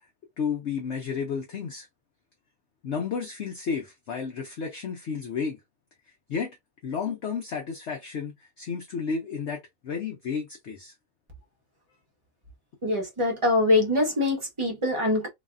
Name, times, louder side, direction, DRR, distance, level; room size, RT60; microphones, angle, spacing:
voice 1, 0.4-1.9 2.8-5.6 6.3-6.6 6.8-10.9, left 6 dB, 60° left, 0.8 m, -32 dB
voice 2, 12.8-15.3, left 2 dB, 30° right, 0.6 m, -24 dB
3.1 x 2.2 x 2.4 m
omnidirectional pair, 1.7 m